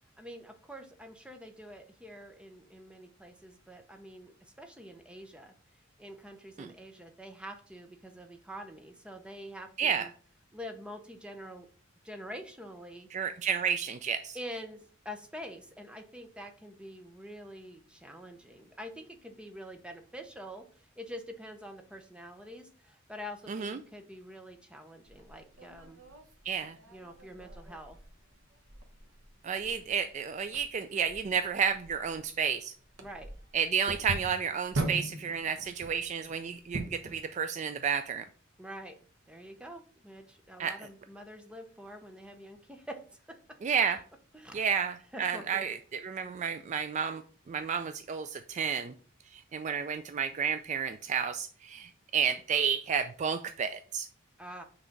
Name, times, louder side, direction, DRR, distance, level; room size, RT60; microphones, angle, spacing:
voice 1, 0.2-5.5 6.0-10.1 10.5-11.7 12.0-13.1 14.3-26.0 26.9-28.0 33.0-33.3 38.6-39.0 39.3-43.6 44.3-44.6 45.1-45.7 54.4-54.6, equal, 5° right, 5 dB, 0.7 m, -46 dB
voice 2, 9.8-10.1 13.1-14.4 23.5-23.8 26.5-26.8 29.4-32.7 33.5-38.2 40.6-40.8 43.6-44.0 44.5-47.2 47.5-48.9 49.3-54.1, right 7 dB, 35° right, 9 dB, 0.3 m, -31 dB
sound 1, 25.1-37.2, right 2 dB, 70° right, 1.0 m, -42 dB
6.0 x 3.3 x 5.2 m, 0.42 s
head